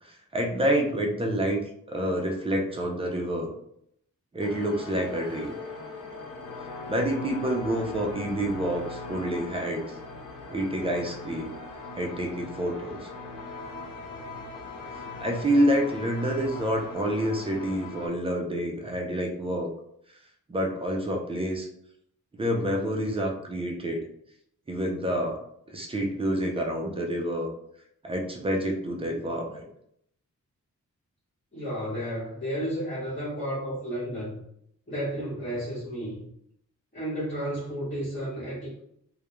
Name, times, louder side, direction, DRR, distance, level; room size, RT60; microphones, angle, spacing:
voice 1, 0.0-3.5 4.3-5.5 6.9-10.0 10.5-11.5 11.9-13.1 15.2-19.7 20.5-21.7 22.4-24.1 24.7-25.4 25.7-27.5 28.0-29.6, equal, 20° right, 1 dB, 0.3 m, -28 dB
sound 1, 4.4-18.1, left 3 dB, 75° left, 0.5 m, -40 dB
voice 2, 31.5-34.4 34.9-36.2 36.9-38.8, equal, 25° left, -9 dB, 1.0 m, -32 dB
2.3 x 2.1 x 2.9 m, 0.72 s
wide cardioid pair, 160°, 32 cm